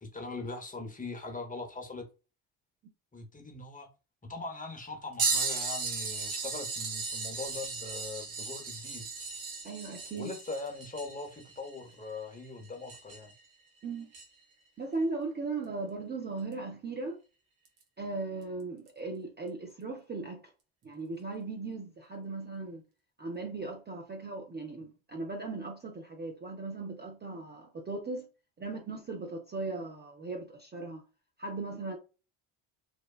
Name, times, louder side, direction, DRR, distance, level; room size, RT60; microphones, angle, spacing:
voice 1, 0.0-2.1 3.1-3.9 4.3-9.1 10.1-13.3, left 3 dB, 15° left, 0.7 m, -41 dB
sound 1, 5.2-13.4 14.1-14.2 16.5-16.6 17.7-17.8 18.9-19.0, right 4 dB, 65° right, 1.0 m, -36 dB
voice 2, 9.6-10.3 13.8-14.1 14.8-17.2 18.0-20.4 20.8-22.8 23.2-28.3 28.6-31.0 31.4-32.0, right 3 dB, 20° right, 0.5 m, -38 dB
2.8 x 2.1 x 2.3 m
supercardioid pair, 65°, 49 cm